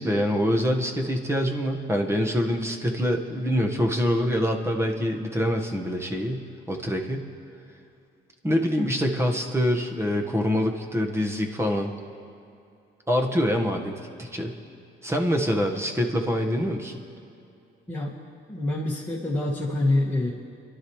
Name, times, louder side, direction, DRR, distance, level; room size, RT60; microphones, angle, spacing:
voice 1, 0.0-7.3 8.4-11.9 13.1-14.5 15.0-17.0, equal, 15° right, 3 dB, 1.4 m, -25 dB
voice 2, 18.5-20.3, left 2 dB, 10° left, -8 dB, 1.7 m, -26 dB
25.0 x 11.5 x 3.2 m, 2.6 s
cardioid pair, 90°, 20 cm